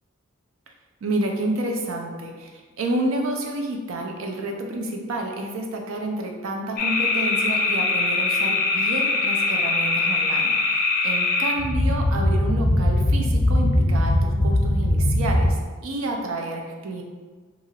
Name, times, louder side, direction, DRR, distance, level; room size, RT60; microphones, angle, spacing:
voice 1, 1.0-15.6 15.8-17.0, right 1 dB, 80° right, 2 dB, 0.5 m, -29 dB
sound 1, 6.8-15.5, left 2 dB, 45° left, 0.4 m, -21 dB
2.9 x 2.4 x 2.8 m, 1.4 s
head